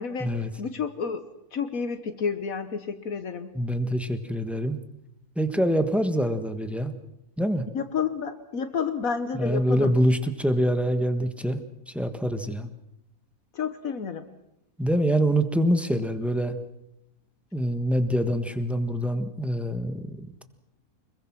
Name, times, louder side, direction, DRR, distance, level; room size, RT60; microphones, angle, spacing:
voice 1, 0.0-0.3 0.6-3.5 7.7-9.9 13.5-14.3, left 6 dB, 70° left, 9 dB, 1.6 m, -30 dB
voice 2, 3.5-4.8 5.4-7.0 7.4-7.6 9.3-11.6 11.9-12.7 14.8-16.6 17.5-20.4, equal, ahead, 8 dB, 1.2 m, -25 dB
25.0 x 22.0 x 6.1 m, 0.83 s
omnidirectional pair, 1.5 m